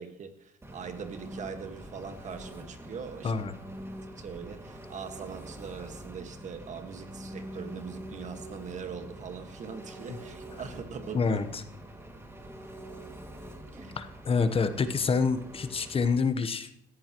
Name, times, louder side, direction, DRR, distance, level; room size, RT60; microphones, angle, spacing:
voice 1, 0.0-3.5 4.2-11.4 13.7-14.0, right 6 dB, 45° right, 7 dB, 1.7 m, -41 dB
Engine, 0.6-16.2, right 1 dB, 15° right, 2.2 m, -45 dB
voice 2, 11.1-11.6 14.0-16.7, left 5 dB, 35° left, 10 dB, 1.0 m, -27 dB
16.0 x 14.5 x 3.1 m, 0.79 s
cardioid pair, 110°, 17 cm